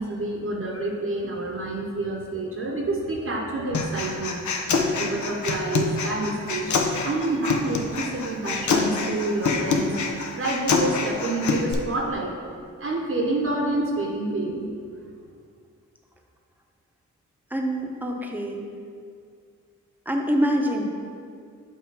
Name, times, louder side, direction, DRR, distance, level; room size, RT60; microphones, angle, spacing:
voice 1, 0.0-4.5 5.0-12.3 12.8-14.7, right 2 dB, 45° right, -2 dB, 0.9 m, -28 dB
Human voice, 3.7-11.7, left 4 dB, 65° left, 0.7 m, -26 dB
voice 2, 17.5-18.6 20.1-20.9, equal, 5° right, 1 dB, 0.8 m, -25 dB
6.6 x 3.0 x 5.4 m, 2.2 s
cardioid pair, 50°, 31 cm